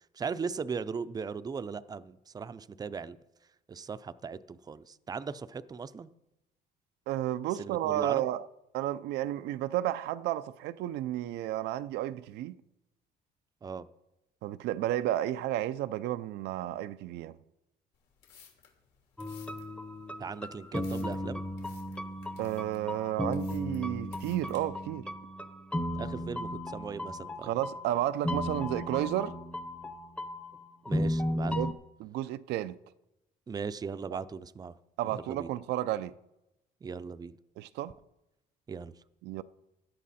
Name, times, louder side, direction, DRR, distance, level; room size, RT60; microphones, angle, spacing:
voice 1, 0.1-3.2 3.7-6.1 7.6-8.2 13.6-13.9 20.2-21.5 26.0-27.5 30.9-31.5 33.5-34.8 35.1-35.5 36.8-37.3 38.7-38.9, right 5 dB, 20° right, 0.5 m, -38 dB
voice 2, 7.1-8.5 8.7-12.6 14.4-17.4 22.4-25.1 27.4-29.4 31.5-32.8 34.1-34.2 35.0-36.1 37.6-37.9 39.2-39.4, right 13 dB, 80° right, 0.5 m, -32 dB
sound 1, 17.9-24.6, left 8 dB, 85° left, 3.3 m, -58 dB
sound 2, 19.2-31.7, left 1 dB, 5° left, 0.8 m, -35 dB
16.0 x 11.5 x 4.2 m
cardioid pair, 110°, 17 cm